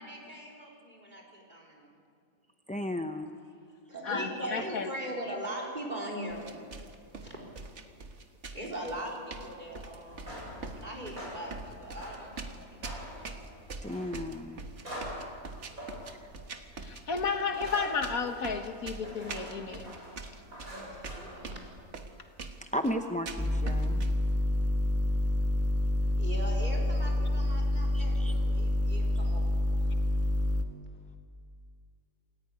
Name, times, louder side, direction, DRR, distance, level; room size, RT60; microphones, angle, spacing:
voice 1, 0.0-1.9 3.9-6.6 7.2-7.4 8.5-10.4 10.7-13.4 20.6-21.6 26.2-29.5, right 1 dB, 30° right, 0 dB, 4.5 m, -40 dB
voice 2, 2.7-3.3 13.8-14.6 16.2-16.3 22.6-24.0 27.9-28.3, left 1 dB, 10° left, 6 dB, 0.4 m, -34 dB
voice 3, 4.0-4.9 16.8-19.9, left 5 dB, 70° left, 6 dB, 2.0 m, -32 dB
sound 1, 6.3-24.2, right 3 dB, 50° right, 1.7 m, -43 dB
sound 2, 10.1-21.9, equal, 70° right, 8.1 m, -45 dB
sound 3, 23.4-30.6, left 1 dB, 10° right, 1.4 m, -28 dB
27.5 x 15.0 x 9.8 m, 2.3 s
omnidirectional pair, 1.6 m